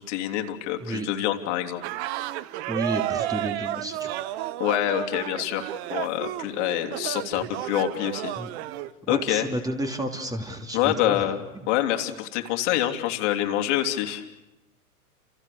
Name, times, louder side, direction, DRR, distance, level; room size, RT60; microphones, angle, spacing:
voice 1, 0.1-1.8 4.6-8.3 9.1-9.5 10.7-11.4 11.7-14.2, left 13 dB, 50° left, 5 dB, 3.2 m, -26 dB
sound 1, 1.8-8.9, right 14 dB, 45° right, 1.2 m, -32 dB
voice 2, 2.7-4.1 8.4-8.5 9.1-11.3 11.5-11.6, right 1 dB, 10° right, 4 dB, 2.8 m, -31 dB
30.0 x 28.5 x 6.9 m, 0.94 s
hypercardioid pair, 110°, 45 cm